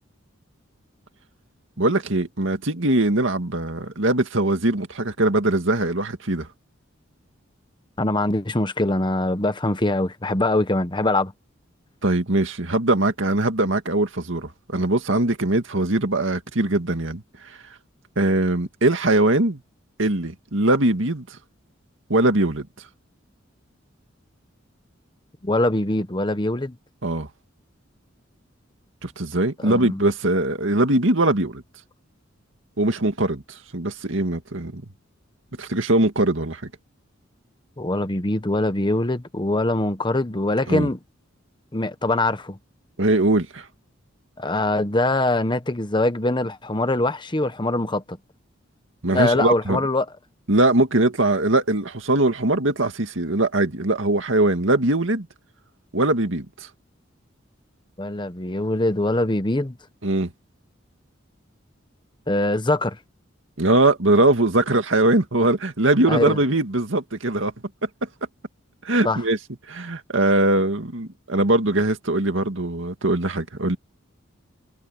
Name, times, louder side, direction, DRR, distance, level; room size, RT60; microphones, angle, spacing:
voice 1, 1.8-6.5 12.0-17.2 18.2-19.6 20.0-21.2 22.1-22.7 27.0-27.3 29.0-31.6 32.8-34.8 35.6-36.7 40.7-40.9 43.0-43.6 49.0-49.8 50.5-55.3 55.9-56.5 60.0-60.3 63.6-67.5 68.8-69.4 69.7-73.8, right 2 dB, 70° right, 2.2 m, -21 dB
voice 2, 8.0-11.3 25.4-26.8 29.6-30.0 37.8-41.0 41.7-42.6 44.4-48.2 49.1-50.1 58.0-59.8 62.3-63.0 66.1-66.4 69.0-69.2, left 2 dB, 25° left, 1.1 m, -23 dB
head